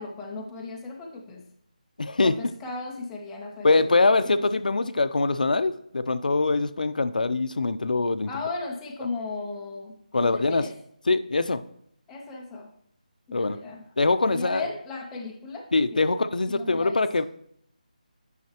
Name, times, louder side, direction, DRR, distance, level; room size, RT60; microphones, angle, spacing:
voice 1, 0.0-1.5 2.2-4.4 8.3-10.7 12.1-12.7 13.3-13.8 14.2-15.7 15.9-16.0 16.5-17.0, left 3 dB, 5° left, -2 dB, 0.4 m, -36 dB
voice 2, 2.0-2.3 3.6-8.3 10.1-10.6 11.1-11.6 13.3-13.6 14.0-14.7 15.7-17.2, left 3 dB, 75° left, 11 dB, 0.6 m, -23 dB
9.3 x 5.6 x 2.9 m, 0.69 s
figure-of-eight pair, 175°, 4 cm